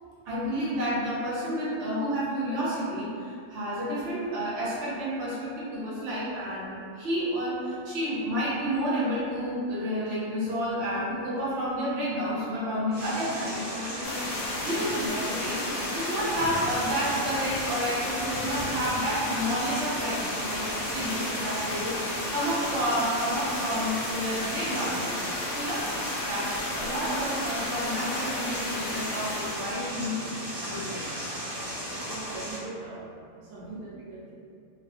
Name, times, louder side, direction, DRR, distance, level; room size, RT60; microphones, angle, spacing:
voice 1, 0.2-14.1 14.6-15.6 15.9-22.0 22.3-25.0 25.4-25.9 26.2-31.2 33.5-33.8, equal, 60° right, -9 dB, 1.1 m, -30 dB
sound 1, 12.9-32.6, equal, 30° right, 0.8 m, -36 dB
sound 2, 14.0-29.8, left 2 dB, 85° left, 1.1 m, -34 dB
voice 2, 31.6-33.1 33.4-34.3, right 3 dB, 85° right, -8 dB, 1.2 m, -42 dB
3.3 x 2.3 x 2.5 m, 2.4 s
omnidirectional pair, 1.5 m